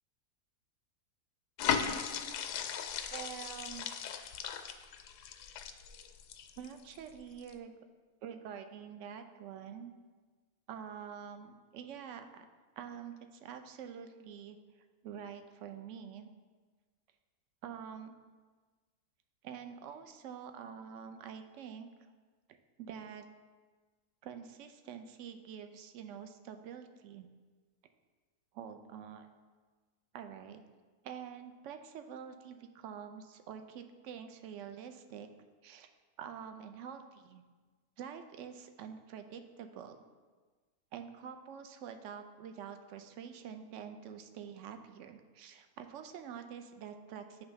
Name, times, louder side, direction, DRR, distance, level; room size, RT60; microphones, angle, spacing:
sound 1, 1.6-7.0 7.4-7.5, left 8 dB, 85° left, 1.2 m, -37 dB
voice 1, 3.1-3.9 6.6-7.7 8.2-9.9 10.7-12.5 12.8-14.6 15.0-16.3 17.6-18.2 19.4-22.1 22.8-23.2 24.2-27.3 28.5-29.3 30.1-30.6 31.0-35.3 35.6-35.9 36.2-37.4 38.0-40.1 40.9-47.4, right 8 dB, 65° right, 7 dB, 0.8 m, -46 dB
8.7 x 3.4 x 5.6 m, 1.4 s
omnidirectional pair, 1.7 m